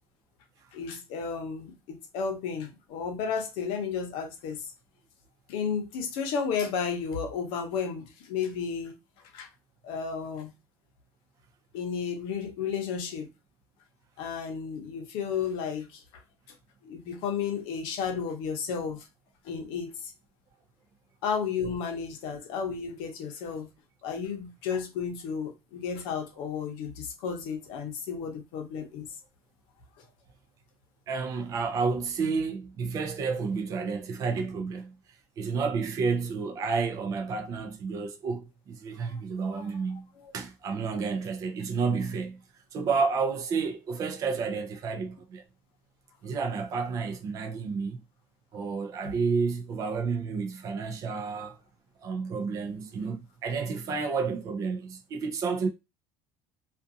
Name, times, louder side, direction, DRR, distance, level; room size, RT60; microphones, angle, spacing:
voice 1, 0.7-4.6 5.5-8.9 9.3-9.5 9.8-10.5 11.7-13.3 14.2-16.0 16.8-19.0 19.4-20.1 21.2-23.7 24.0-29.1 39.1-39.2 39.5-39.6 40.2-40.3, left 6 dB, 65° left, 0.8 m, -33 dB
voice 2, 31.1-34.9 35.4-40.1 40.3-42.4 42.7-45.4 46.2-48.0 48.5-51.6 52.0-55.7, right 5 dB, 35° right, 0.5 m, -30 dB
2.5 x 2.4 x 2.6 m
cardioid pair, 160°, 9 cm